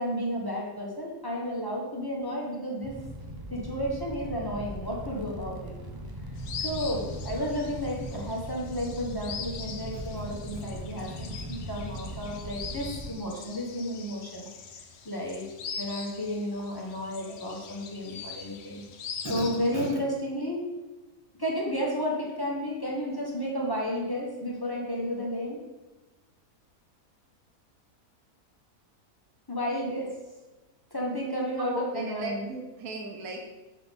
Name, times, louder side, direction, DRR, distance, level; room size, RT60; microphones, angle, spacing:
voice 1, 0.0-3.0 3.5-5.7 6.5-14.8 15.0-15.4 15.8-18.8 19.2-20.6 21.4-25.6 29.5-30.2 30.9-32.4, equal, 15° left, -3 dB, 1.4 m, -32 dB
Fire, 2.8-13.1, right 1 dB, 25° right, 0.5 m, -39 dB
sound 1, 6.4-19.9, left 6 dB, 55° left, 0.8 m, -42 dB
voice 2, 31.6-33.4, right 2 dB, 75° right, 2 dB, 1.3 m, -36 dB
7.3 x 4.0 x 5.3 m, 1.1 s
omnidirectional pair, 1.6 m